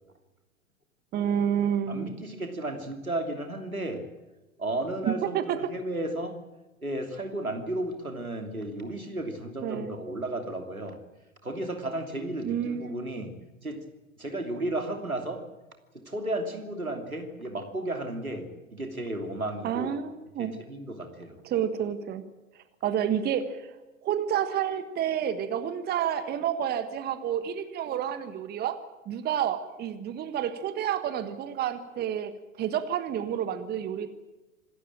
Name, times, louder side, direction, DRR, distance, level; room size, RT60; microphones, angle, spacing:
voice 1, 1.1-2.2 5.1-5.6 9.6-9.9 12.4-13.0 19.6-20.5 21.4-22.2 22.5-23.7 24.0-28.8 29.1-32.3 32.6-34.1, right 9 dB, 25° right, 11 dB, 1.4 m, -29 dB
voice 2, 1.9-4.0 4.6-6.4 6.8-11.0 11.4-13.4 13.6-13.9 14.2-15.5 15.9-19.9 20.4-21.4, right 1 dB, 85° right, 5 dB, 3.0 m, -33 dB
26.0 x 13.0 x 8.9 m, 1.1 s
figure-of-eight pair, 95°, 41 cm